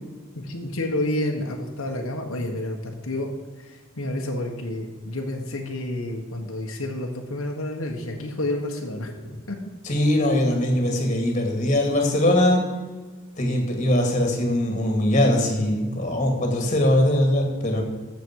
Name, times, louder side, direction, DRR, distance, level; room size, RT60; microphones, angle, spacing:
voice 1, 0.4-3.3 4.0-9.6, left 1 dB, 85° left, 1 dB, 1.5 m, -29 dB
voice 2, 9.8-12.6 13.4-17.8, left 1 dB, 35° left, 2 dB, 2.4 m, -21 dB
14.5 x 7.1 x 4.8 m, 1.4 s
head